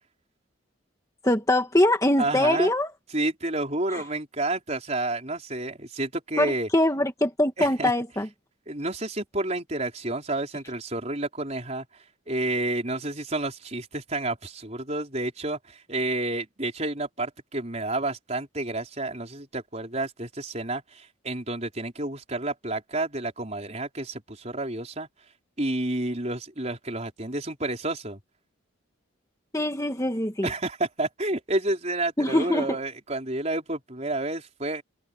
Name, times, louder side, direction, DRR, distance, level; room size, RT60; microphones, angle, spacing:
voice 1, 1.2-2.9 3.9-4.0 6.4-8.3 29.5-30.5 32.2-32.8, left 1 dB, 15° left, 1.8 m, -23 dB
voice 2, 2.2-2.7 3.1-6.7 7.6-7.9 8.7-11.8 12.3-25.1 25.6-28.2 30.4-34.8, right 2 dB, 30° right, 4.7 m, -30 dB
head